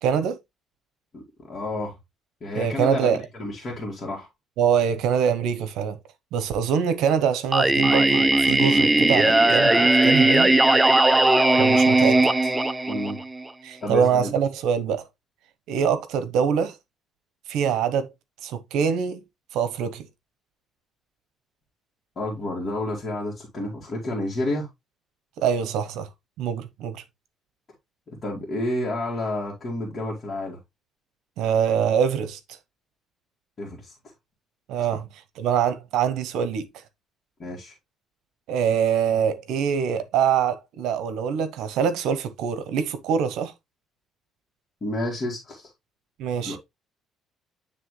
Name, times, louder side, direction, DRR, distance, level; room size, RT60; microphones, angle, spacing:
voice 1, 0.0-0.4 2.5-3.2 4.6-6.0 6.3-10.6 11.6-12.5 13.6-15.1 15.7-16.7 17.5-18.1 18.4-19.2 19.5-20.1 25.4-26.1 26.4-27.0 31.4-32.4 34.7-35.1 35.4-36.7 38.5-43.5 46.2-46.6, right 7 dB, 75° right, 0.9 m, -24 dB
voice 2, 1.5-1.9 2.4-4.3 12.9-13.2 13.8-14.3 22.2-24.7 28.1-30.6 33.6-33.9 37.4-37.7 44.8-45.7 46.4-46.6, left 1 dB, 30° left, 2.1 m, -30 dB
Singing, 7.5-13.5, right 2 dB, 10° right, 0.4 m, -18 dB
9.6 x 3.3 x 3.2 m
cardioid pair, 135°, 0 cm